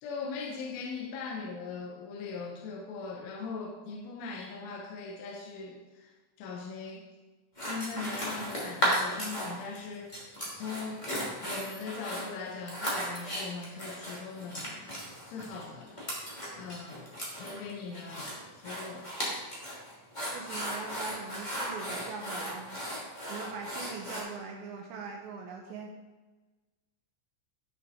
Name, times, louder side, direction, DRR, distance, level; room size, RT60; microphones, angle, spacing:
voice 1, 0.0-6.1 6.4-7.0 7.6-10.2 10.5-11.1 11.4-15.0 15.3-16.0 16.6-17.1 17.4-19.1, left 4 dB, 75° left, -1 dB, 3.2 m, -40 dB
sound 1, 7.5-9.8 10.1-24.2, equal, 50° left, 0.5 m, -35 dB
voice 2, 20.3-22.7 23.3-25.9, right 4 dB, 80° right, 1 dB, 2.6 m, -41 dB
12.0 x 6.7 x 4.3 m, 1.2 s
omnidirectional pair, 6.0 m